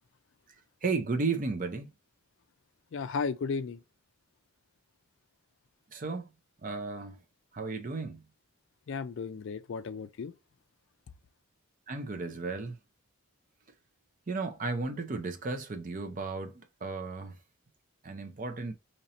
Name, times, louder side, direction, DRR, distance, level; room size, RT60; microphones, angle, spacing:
voice 1, 0.8-1.9 5.9-6.3 6.6-7.2 7.5-8.2 11.9-12.7 14.3-17.4 18.0-18.7, right 3 dB, 35° right, 0.5 m, -34 dB
voice 2, 2.9-3.8 8.9-10.3, left 5 dB, 55° left, 0.4 m, -34 dB
2.9 x 2.7 x 4.1 m
head